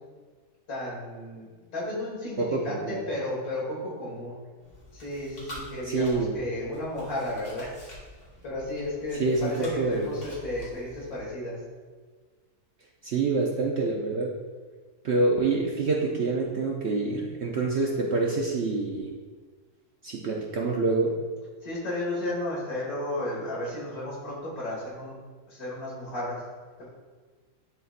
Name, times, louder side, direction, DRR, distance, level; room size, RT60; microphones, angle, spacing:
voice 1, 0.7-4.4 4.9-7.8 8.4-11.6 21.6-25.1 25.5-26.4 26.8-26.9, left 1 dB, 70° left, -5 dB, 2.3 m, -33 dB
voice 2, 2.4-3.0 5.9-6.3 9.2-10.1 13.0-14.4 15.0-19.1 20.0-21.2, right 3 dB, 60° right, -1 dB, 0.7 m, -26 dB
Chewing mastication, 4.6-11.2, left 1 dB, 50° left, 2.0 m, -47 dB
10.5 x 4.0 x 2.5 m, 1.5 s
omnidirectional pair, 1.6 m